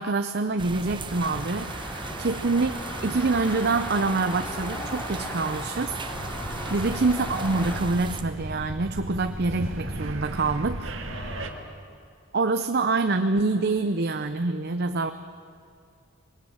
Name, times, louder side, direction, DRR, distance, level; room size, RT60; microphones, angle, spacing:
voice 1, 0.0-1.9 2.2-2.7 3.0-5.9 6.7-10.9 12.3-15.1, right 3 dB, 50° right, 8 dB, 0.7 m, -26 dB
sound 1, 0.6-8.2, right 2 dB, 25° right, 1.0 m, -37 dB
sound 2, 1.1-7.8, equal, 10° left, 3.0 m, -37 dB
voice 2, 2.1-2.4 6.5-6.8 11.1-11.8, left 1 dB, 35° left, -1 dB, 2.4 m, -44 dB
sound 3, 6.1-11.5, right 1 dB, 65° right, 1.9 m, -35 dB
23.0 x 19.5 x 8.9 m, 2.4 s
head